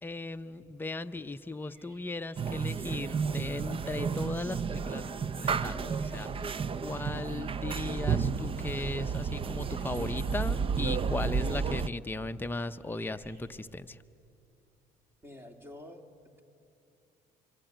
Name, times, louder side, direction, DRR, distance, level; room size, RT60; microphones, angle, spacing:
voice 1, 0.0-6.3 6.8-14.0, left 2 dB, 10° left, 8 dB, 0.8 m, -37 dB
sound 1, 1.0-13.6, right 2 dB, 60° right, 4.9 m, -60 dB
sound 2, 2.4-11.9, right 5 dB, 30° right, 0.6 m, -32 dB
voice 2, 15.2-16.4, left 1 dB, 15° right, 6 dB, 2.4 m, -49 dB
25.0 x 24.0 x 9.2 m, 2.7 s
cardioid pair, 110°, 17 cm